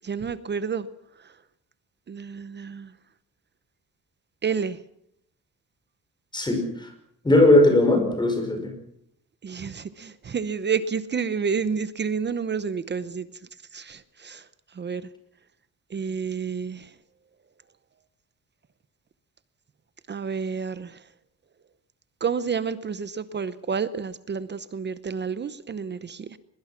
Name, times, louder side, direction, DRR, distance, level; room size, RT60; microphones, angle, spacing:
voice 1, 0.0-0.9 1.2-1.3 2.1-2.9 4.4-4.8 9.4-13.3 13.7-14.4 14.7-15.1 15.9-16.9 20.1-21.0 22.2-26.4, right 6 dB, 30° right, 0.8 m, -30 dB
voice 2, 6.3-6.9 7.2-8.7, left 1 dB, 15° left, 5.6 m, -19 dB
22.5 x 22.0 x 5.9 m
cardioid pair, 175°, 34 cm